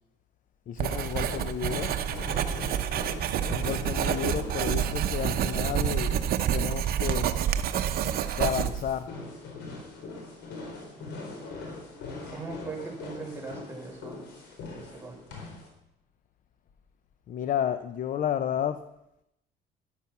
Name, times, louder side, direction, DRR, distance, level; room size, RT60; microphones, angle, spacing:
voice 1, 0.7-1.9 3.5-6.1 6.5-7.3 8.4-9.1 17.3-18.8, left 9 dB, 50° left, 11 dB, 0.7 m, -31 dB
sound 1, 0.8-15.7, left 3 dB, 80° left, 4.2 m, -42 dB
Writing, 0.8-9.0, right 9 dB, 60° right, 0.9 m, -28 dB
voice 2, 12.3-14.2 14.7-15.4, right 3 dB, 15° right, -3 dB, 5.6 m, -40 dB
12.5 x 11.5 x 5.9 m, 0.82 s
cardioid pair, 110°, 17 cm